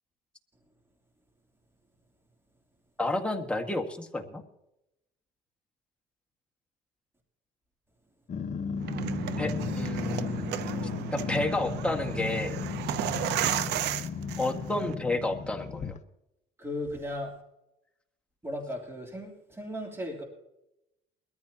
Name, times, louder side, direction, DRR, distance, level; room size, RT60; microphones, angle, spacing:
voice 1, 3.0-4.4 9.4-10.6 11.1-12.6 14.4-16.0, left 2 dB, 5° left, 3 dB, 1.8 m, -31 dB
Growling, 8.3-16.0, left 6 dB, 45° left, 1.1 m, -35 dB
sound 1, 8.8-15.0, right 12 dB, 80° right, 0.7 m, -34 dB
voice 2, 16.6-17.3 18.4-20.2, left 1 dB, 15° right, 1 dB, 3.3 m, -36 dB
22.0 x 14.0 x 2.9 m, 0.86 s
cardioid pair, 110°, 17 cm